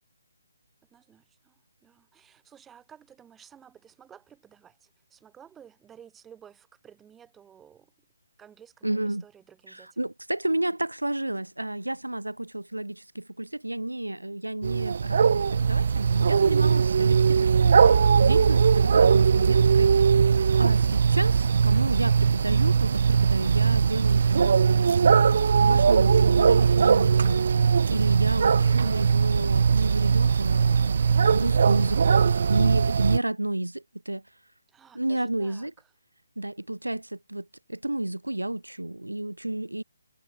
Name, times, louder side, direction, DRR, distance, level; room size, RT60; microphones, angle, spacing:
voice 1, 0.9-7.9 8.4-10.1 34.7-35.7, right 8 dB, 10° right, 2.7 m, -53 dB
voice 2, 8.8-9.2 9.7-17.8 18.2-19.9 20.6-24.9 25.6-27.4 27.9-34.2 34.9-35.7 36.4-39.8, right 1 dB, 90° right, 1.4 m, -31 dB
sound 1, 14.6-33.2, right 6 dB, 50° right, 0.3 m, -20 dB
figure-of-eight pair, 145°, 0 cm